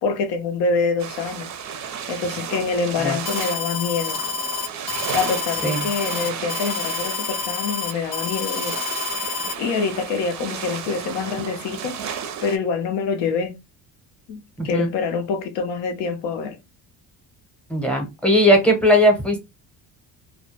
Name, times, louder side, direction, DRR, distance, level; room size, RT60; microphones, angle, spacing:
voice 1, 0.0-1.5 2.1-4.2 5.1-8.8 9.6-12.0 12.4-13.5 14.3-16.6, left 5 dB, 80° left, 0.7 m, -25 dB
sound 1, 1.0-12.6, right 8 dB, 45° right, 0.5 m, -33 dB
Alarm, 3.3-9.5, left 6 dB, 50° left, 0.4 m, -28 dB
voice 2, 14.6-14.9 17.7-19.4, equal, 5° left, 0.7 m, -18 dB
2.2 x 2.1 x 2.8 m
cardioid pair, 120°, 42 cm